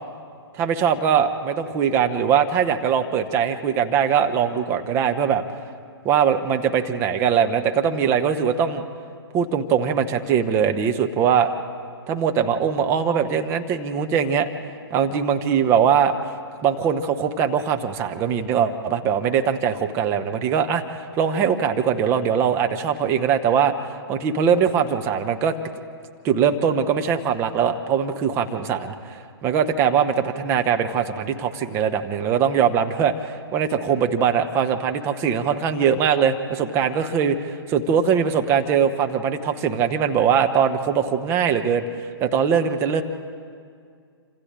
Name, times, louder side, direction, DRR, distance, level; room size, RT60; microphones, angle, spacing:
voice 1, 0.5-5.4 6.0-8.8 9.3-11.5 12.1-14.5 14.9-16.2 16.6-20.8 21.2-23.7 24.1-25.6 26.2-43.0, right 7 dB, 20° right, 6 dB, 0.9 m, -21 dB
27.5 x 26.5 x 3.7 m, 2.2 s
figure-of-eight pair, 125°, 13 cm